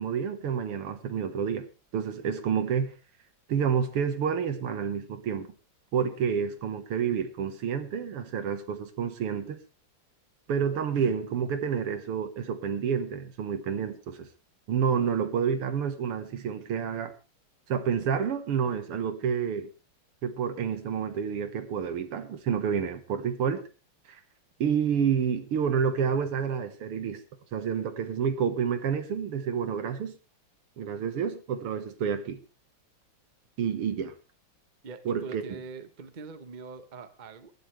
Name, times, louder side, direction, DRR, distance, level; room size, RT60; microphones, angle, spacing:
voice 1, 0.0-1.7 1.9-2.9 3.5-5.5 5.9-9.6 10.5-14.3 14.7-17.1 17.7-19.7 20.2-23.6 24.1-24.2 24.6-27.2 27.5-30.2 30.8-32.4 33.6-34.1 35.1-35.4, right 7 dB, 85° right, 2.3 m, -29 dB
voice 2, 34.8-37.5, right 4 dB, 30° right, 0.9 m, -43 dB
19.5 x 12.0 x 3.3 m
omnidirectional pair, 2.4 m